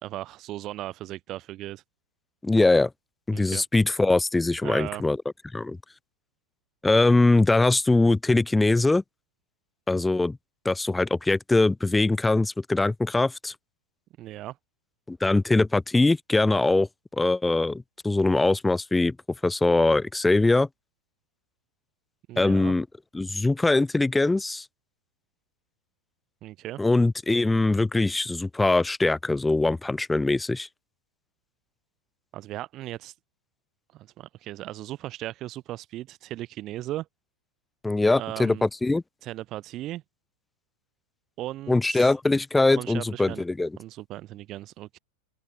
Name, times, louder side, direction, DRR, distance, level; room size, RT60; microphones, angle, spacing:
voice 1, 0.0-1.8 3.3-3.6 4.6-5.0 14.2-14.6 22.3-22.7 26.4-26.8 32.3-33.1 33.9-37.1 38.2-38.7 39.2-40.0 41.4-42.1 42.7-43.4 43.8-45.0, right 15 dB, 35° right, 3.6 m, -37 dB
voice 2, 2.4-2.9 3.3-5.2 5.5-5.8 6.8-9.0 9.9-10.4 10.7-13.5 15.1-19.2 19.4-20.7 22.4-22.9 23.1-24.7 26.8-30.7 37.8-39.0 41.7-43.7, left 2 dB, 5° left, 0.3 m, -22 dB
open air
figure-of-eight pair, 90°, 0 cm